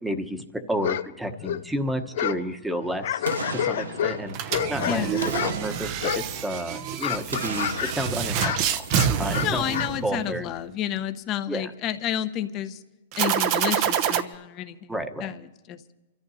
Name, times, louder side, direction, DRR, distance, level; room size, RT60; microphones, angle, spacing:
voice 1, 0.0-5.1 5.4-8.8 9.2-9.8 10.0-10.4 11.5-11.7 14.9-15.3, equal, 5° right, 6 dB, 1.1 m, -31 dB
sound 1, 0.8-1.1 1.3-2.5 2.8-5.6 6.0-6.5 6.8-8.0 8.3-10.0, left 11 dB, 65° left, 0.4 m, -29 dB
Boom, 3.2-4.8 5.2-6.8 7.3-9.6 9.9-10.0, right 5 dB, 90° right, 0.8 m, -36 dB
sound 2, 4.3-10.5 13.1-14.2, right 9 dB, 45° right, 0.8 m, -27 dB
voice 2, 4.8-5.3 9.3-12.8 13.1-14.9 15.2-15.8, left 11 dB, 35° left, 8 dB, 1.0 m, -30 dB
28.5 x 13.5 x 2.8 m, 1.1 s
hypercardioid pair, 120°, 0 cm